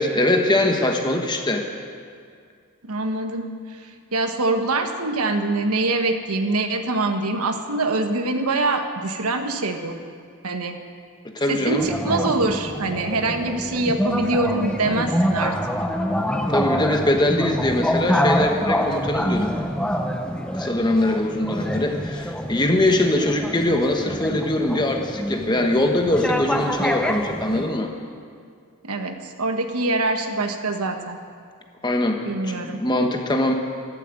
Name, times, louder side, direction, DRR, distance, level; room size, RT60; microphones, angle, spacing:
voice 1, 0.0-1.7 11.3-11.8 16.5-19.5 20.5-27.9 31.8-33.5, left 1 dB, 20° left, 3 dB, 1.1 m, -22 dB
voice 2, 2.8-10.0 10.4-10.8 11.5-15.6 28.8-31.2 32.3-32.8, right 2 dB, 85° right, 6 dB, 1.2 m, -24 dB
sound 1, 11.8-27.7, equal, 5° left, 0.8 m, -26 dB
13.5 x 11.5 x 7.7 m, 2.2 s
head